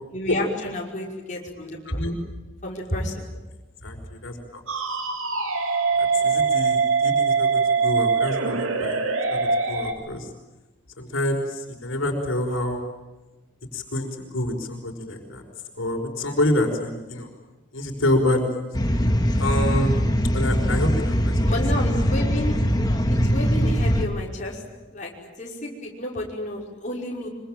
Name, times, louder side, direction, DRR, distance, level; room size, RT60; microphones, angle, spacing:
voice 1, 0.1-2.0 2.6-3.3 21.5-22.6 23.1-24.6 24.9-25.1 25.4-27.3, left 1 dB, 35° left, -3 dB, 5.6 m, -31 dB
voice 2, 1.8-2.2 3.8-4.6 6.0-9.0 9.3-10.3 11.0-12.8 13.7-15.4 15.8-17.3 17.7-18.6 19.4-19.9 20.3-21.5, left 1 dB, 75° left, 3 dB, 5.2 m, -27 dB
sound 1, 4.7-9.9, right 5 dB, 85° right, 3.2 m, -22 dB
sound 2, 18.7-24.0, equal, 20° left, 2.0 m, -21 dB
25.0 x 25.0 x 9.1 m, 1.1 s
head